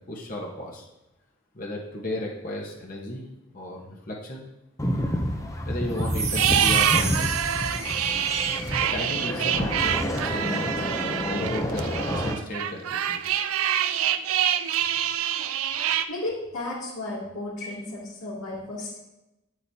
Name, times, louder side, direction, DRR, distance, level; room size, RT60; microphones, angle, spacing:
voice 1, 0.1-0.9 1.5-3.2 3.5-4.4 5.7-7.4 7.8-8.1 8.8-10.7 11.2-13.2, left 1 dB, 40° left, -2 dB, 1.3 m, -34 dB
sound 1, 4.8-12.3, equal, 15° left, 0.7 m, -29 dB
sound 2, 6.0-8.5, right 4 dB, 35° right, 1.2 m, -32 dB
sound 3, 6.3-16.0, right 10 dB, 85° right, 0.4 m, -26 dB
voice 2, 16.1-19.0, left 2 dB, 85° left, -11 dB, 2.7 m, -33 dB
9.5 x 8.0 x 2.9 m, 0.93 s
head